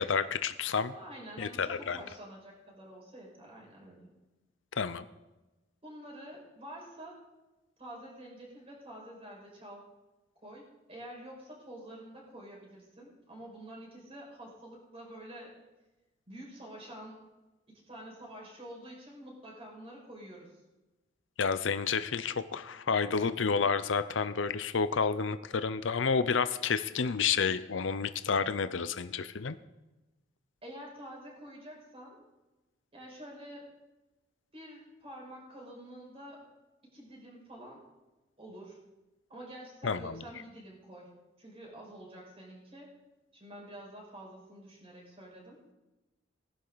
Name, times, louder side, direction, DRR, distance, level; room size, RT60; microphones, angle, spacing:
voice 1, 0.0-0.9 1.4-2.0 4.8-5.0 21.4-29.6 39.8-40.2, left 5 dB, 75° left, 12 dB, 0.6 m, -30 dB
voice 2, 0.9-4.1 5.8-7.2 7.8-9.9 10.4-15.5 16.3-17.2 17.9-20.6 30.6-32.2 32.9-33.7 34.5-36.4 36.9-37.8 38.4-38.8 39.3-41.1 41.4-42.9 43.3-45.6, right 1 dB, 30° right, -2 dB, 5.8 m, -48 dB
19.5 x 11.5 x 4.1 m, 1.1 s
head